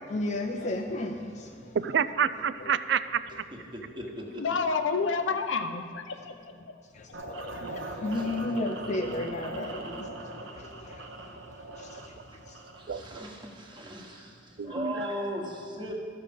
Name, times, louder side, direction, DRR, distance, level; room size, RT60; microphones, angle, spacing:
voice 1, 0.1-1.5 2.6-2.7 7.2-10.1 10.3-10.4 14.7-14.8, left 2 dB, 40° left, 0.4 m, -32 dB
voice 2, 1.7-3.2 7.6-7.7 12.9-13.2 14.6-15.1, right 7 dB, 65° right, 0.4 m, -28 dB
voice 3, 3.7-4.6 7.8-8.2 9.8-10.0 10.3-10.5 12.3-15.9, equal, 25° right, 1.3 m, -39 dB
voice 4, 4.4-6.5, left 4 dB, 90° left, 0.7 m, -29 dB
sound 1, 7.1-13.1, right 2 dB, 85° right, 0.9 m, -41 dB
13.0 x 6.6 x 5.3 m
head